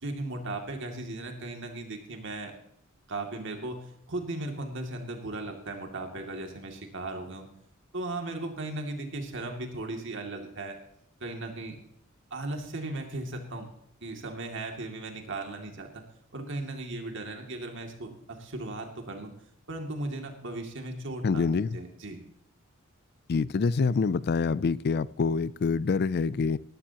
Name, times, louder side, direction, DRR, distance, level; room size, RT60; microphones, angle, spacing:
voice 1, 0.0-2.5 3.1-3.8 4.1-7.5 7.9-10.7 11.2-11.7 12.3-13.7 14.0-16.0 16.3-19.3 19.7-22.2, right 2 dB, 60° right, 2.5 m, -37 dB
voice 2, 21.2-21.7 23.3-26.6, left 4 dB, 50° left, 0.4 m, -26 dB
20.0 x 12.0 x 2.9 m
head